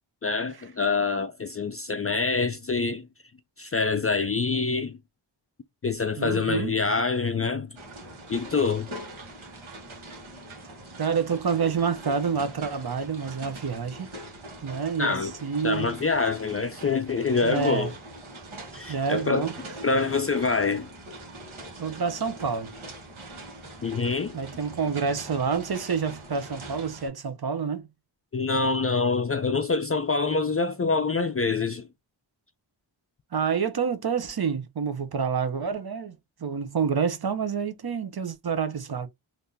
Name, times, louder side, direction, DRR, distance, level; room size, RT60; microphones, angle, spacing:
voice 1, 0.2-3.1 3.6-5.0 5.8-7.7 8.3-8.9 15.0-15.3 15.6-17.9 18.7-19.5 19.8-20.9 23.8-24.4 28.3-31.9, left 4 dB, 30° left, 0.4 m, -25 dB
voice 2, 6.2-6.7 11.0-14.1 14.6-16.0 17.4-17.9 18.9-19.5 21.8-22.7 24.3-27.9 33.3-36.1 36.4-39.1, right 6 dB, 50° right, 0.7 m, -28 dB
Raindrops on roof after the rain, 7.8-27.1, right 1 dB, 75° right, 1.3 m, -43 dB
3.4 x 2.6 x 2.7 m
wide cardioid pair, 60°, 48 cm